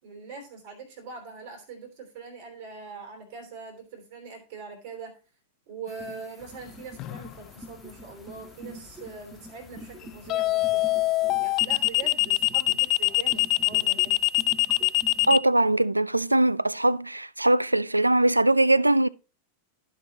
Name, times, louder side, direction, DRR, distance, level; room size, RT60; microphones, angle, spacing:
voice 1, 0.0-5.1 5.7-10.8 11.4-14.1, right 4 dB, 50° right, 3.1 m, -42 dB
sound 1, 5.9-15.4, right 1 dB, 15° right, 1.9 m, -47 dB
sound 2, 7.0-7.3 10.3-15.4, left 20 dB, 35° left, 0.3 m, -23 dB
voice 2, 15.3-19.1, right 2 dB, 85° right, 0.3 m, -21 dB
14.5 x 5.7 x 2.8 m
figure-of-eight pair, 90°, 0 cm